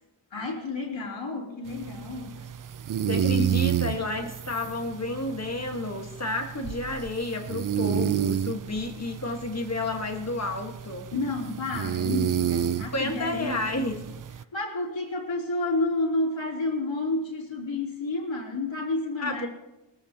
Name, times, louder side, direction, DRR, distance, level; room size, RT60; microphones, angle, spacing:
voice 1, 0.3-2.5 3.3-3.5 3.8-4.0 11.1-13.6 14.5-19.5, left 2 dB, 70° left, -2 dB, 3.3 m, -30 dB
sound 1, 1.7-14.4, right 9 dB, 45° right, 0.5 m, -30 dB
voice 2, 3.1-11.1 12.9-14.1 19.2-19.5, left 2 dB, 35° left, 4 dB, 1.5 m, -31 dB
21.5 x 14.5 x 2.9 m, 0.98 s
wide cardioid pair, 100°, 46 cm